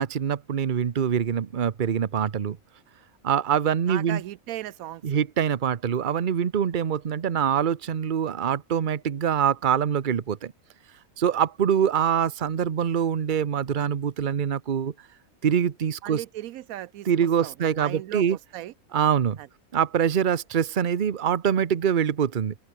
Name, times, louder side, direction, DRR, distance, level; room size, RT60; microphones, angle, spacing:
voice 1, 0.0-2.6 3.2-4.2 5.0-10.5 11.2-14.9 15.4-16.2 17.1-18.4 18.9-19.4 19.7-22.5, right 8 dB, 40° right, 0.9 m, -24 dB
voice 2, 3.9-5.0 16.0-17.1 17.4-18.7 19.4-19.5, right 13 dB, 85° right, 1.1 m, -37 dB
open air
omnidirectional pair, 1.5 m